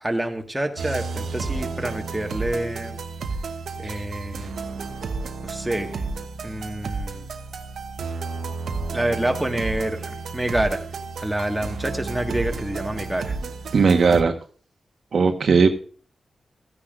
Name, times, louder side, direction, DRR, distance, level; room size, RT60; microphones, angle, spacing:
voice 1, 0.0-3.0 3.8-4.5 5.4-6.0 6.4-7.3 8.9-10.8 11.2-13.4 14.1-14.2, right 1 dB, 10° right, 2 dB, 1.6 m, -27 dB
sound 1, 0.8-14.2, right 4 dB, 85° right, 1.0 m, -32 dB
voice 2, 13.7-14.3 15.1-15.7, right 5 dB, 65° right, 5 dB, 1.2 m, -17 dB
14.0 x 9.8 x 2.5 m, 0.42 s
wide cardioid pair, 95°, 0 cm